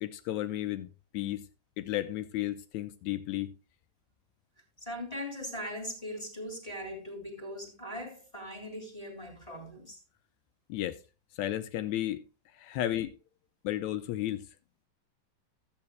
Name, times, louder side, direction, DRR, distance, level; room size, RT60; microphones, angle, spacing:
voice 1, 0.0-1.5 1.8-3.5 10.7-11.0 11.4-12.2 12.6-13.2 13.6-14.5, left 13 dB, 80° left, 1.7 m, -33 dB
voice 2, 4.8-10.0, equal, 15° left, 2.3 m, -40 dB
14.5 x 8.6 x 2.2 m
omnidirectional pair, 3.7 m